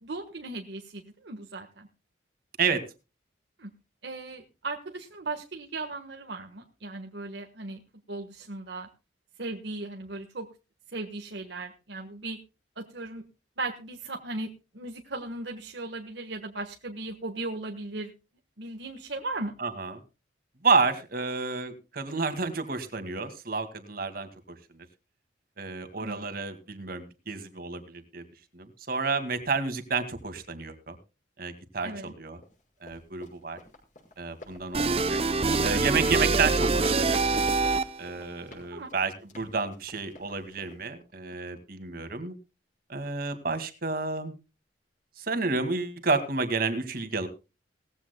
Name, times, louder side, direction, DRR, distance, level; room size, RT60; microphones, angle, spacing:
voice 1, 0.0-1.9 3.6-3.7 4.0-7.8 8.1-8.9 9.4-10.5 10.9-12.4 12.8-13.2 13.6-14.5 14.7-18.1 18.6-19.5 26.0-26.3 31.8-32.1 35.7-35.8 38.7-38.9, right 2 dB, 65° right, 3 dB, 1.4 m, -37 dB
voice 2, 19.6-20.0 20.6-24.6 25.6-28.2 28.5-31.0 31.4-32.4 32.8-33.6 34.2-35.2 35.6-37.2 38.0-42.3 42.9-44.3 45.2-47.3, right 4 dB, 50° right, 9 dB, 2.1 m, -30 dB
Run, 32.4-40.9, left 2 dB, 40° left, 5.6 m, -53 dB
sound 1, 34.7-38.2, right 3 dB, 30° right, 0.6 m, -25 dB
19.0 x 15.0 x 2.2 m, 0.30 s
head